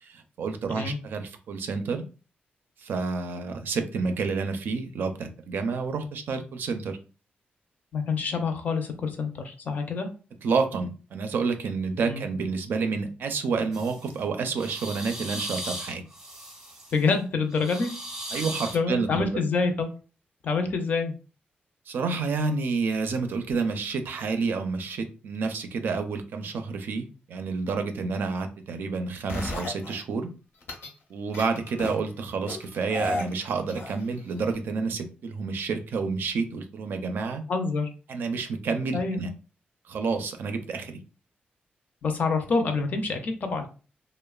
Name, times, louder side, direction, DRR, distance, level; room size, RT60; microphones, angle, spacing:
voice 1, 0.0-2.1 2.8-7.0 10.4-16.0 18.3-19.4 21.9-30.3 31.1-37.4 38.1-39.3 39.9-41.0, right 4 dB, 65° right, 7 dB, 0.4 m, -29 dB
voice 2, 7.9-10.1 12.1-12.3 16.9-17.9 18.3-18.4 18.7-19.9 20.4-21.1 37.5-37.9 38.9-39.2 42.0-43.7, left 4 dB, 50° left, 6 dB, 0.5 m, -27 dB
sound 1, 13.7-14.1 14.5-17.0 17.5-18.8, right 1 dB, 15° right, 0.6 m, -37 dB
sound 2, 29.3-30.0 30.6-30.9 31.3-32.0 32.5-34.2 34.5-34.6, left 2 dB, 85° left, 0.8 m, -33 dB
3.0 x 2.1 x 2.3 m, 0.35 s
wide cardioid pair, 165°, 4 cm